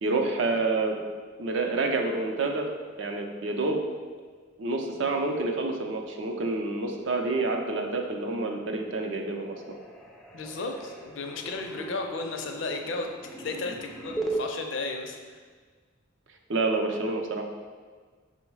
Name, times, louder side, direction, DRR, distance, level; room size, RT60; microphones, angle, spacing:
voice 1, 0.0-1.0 1.4-2.7 3.0-3.8 4.6-9.6 16.5-17.5, right 3 dB, 60° right, 3 dB, 0.5 m, -28 dB
sound 1, 8.9-9.0 9.3-14.4, right 2 dB, ahead, 0.3 m, -38 dB
voice 2, 10.3-15.4, left 3 dB, 60° left, 3 dB, 0.5 m, -34 dB
5.3 x 2.1 x 4.6 m, 1.5 s
head